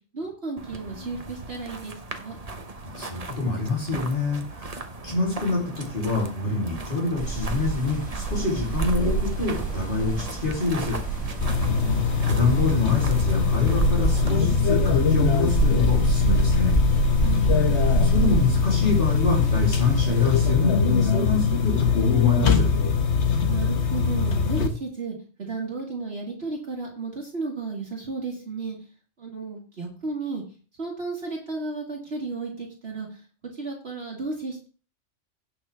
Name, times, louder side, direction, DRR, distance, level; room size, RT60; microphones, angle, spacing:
voice 1, 0.1-2.4 11.5-11.9 17.2-17.6 23.4-28.8 29.2-30.4 30.8-33.2 33.5-34.7, right 3 dB, 55° right, -2 dB, 2.1 m, -33 dB
sound 1, 0.6-14.4, right 3 dB, 30° right, 1.1 m, -38 dB
voice 2, 2.8-11.0 12.2-16.7 18.0-22.7, left 3 dB, 45° left, -5 dB, 3.2 m, -26 dB
sound 2, 7.2-20.5, right 4 dB, 5° left, 4.2 m, -27 dB
sound 3, 11.4-24.7, left 6 dB, 65° left, 1.3 m, -22 dB
17.0 x 5.9 x 3.4 m, 0.37 s
omnidirectional pair, 1.3 m